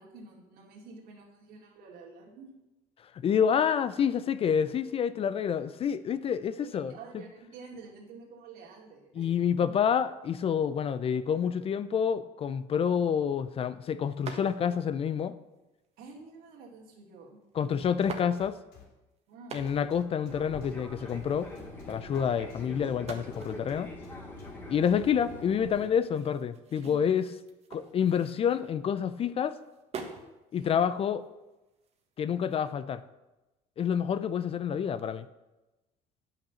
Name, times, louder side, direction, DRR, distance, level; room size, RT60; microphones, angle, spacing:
voice 1, 0.0-2.5 6.5-9.7 16.0-17.4 19.3-19.6 26.8-27.1 30.6-30.8, right 4 dB, 70° right, -1 dB, 2.6 m, -49 dB
voice 2, 3.1-7.0 9.2-15.4 17.6-18.6 19.5-21.5 21.9-23.9 24.7-27.3 27.7-29.6 30.5-31.3 32.2-33.0 33.8-35.3, left 8 dB, 35° left, 14 dB, 0.5 m, -28 dB
sound 1, 14.3-14.9 15.7-16.2 17.2-17.3 17.9-18.8 19.3-20.0 20.3-20.4 20.6-21.6 22.9-29.0 29.5-30.3 30.8-32.6, right 5 dB, 40° right, 1.4 m, -46 dB
sound 2, 17.8-18.8 19.5-20.7 21.1-22.6 23.3-24.5 24.9-25.3, left 7 dB, 80° left, 2.8 m, -53 dB
Fixed-wing aircraft airplane, 20.3-25.9, left 2 dB, 15° left, 2.2 m, -44 dB
9.1 x 5.9 x 7.1 m, 1.0 s
cardioid pair, 120°, 16 cm